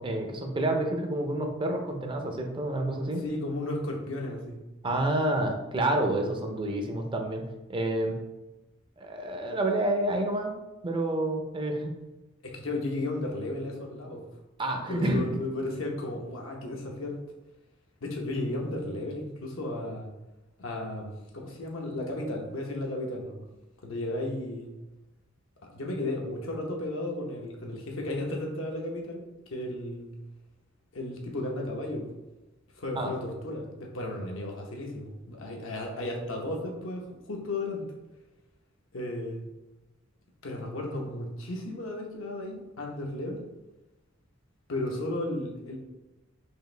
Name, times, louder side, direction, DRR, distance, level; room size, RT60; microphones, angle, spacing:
voice 1, 0.0-3.2 4.8-7.4 7.7-8.1 9.0-10.5 10.8-11.9 14.6-15.3 33.0-33.1, right 1 dB, 25° right, 3 dB, 0.5 m, -28 dB
voice 2, 3.2-4.6 12.4-14.2 14.9-17.2 18.0-20.1 20.6-23.5 23.8-24.7 25.6-29.2 29.5-30.1 30.9-32.1 32.7-37.8 38.9-39.4 40.4-43.4 44.7-45.8, left 1 dB, 75° left, 1 dB, 0.9 m, -34 dB
4.7 x 2.6 x 3.2 m, 1.0 s
head